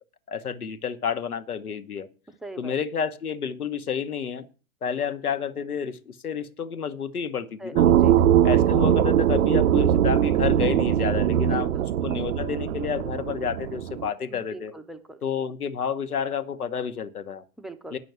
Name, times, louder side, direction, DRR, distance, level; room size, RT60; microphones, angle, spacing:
voice 1, 0.3-2.1 2.6-4.5 4.8-7.9 8.4-11.7 12.0-14.7 15.2-17.4 17.9-18.0, left 7 dB, 90° left, 11 dB, 1.1 m, -30 dB
voice 2, 2.4-2.8 7.6-8.2 11.3-11.8 14.3-15.2 17.6-17.9, right 2 dB, ahead, 6 dB, 0.5 m, -41 dB
sound 1, 7.8-14.1, right 10 dB, 70° right, 0.6 m, -21 dB
9.6 x 6.2 x 7.9 m, 0.36 s
hypercardioid pair, 115°, 43 cm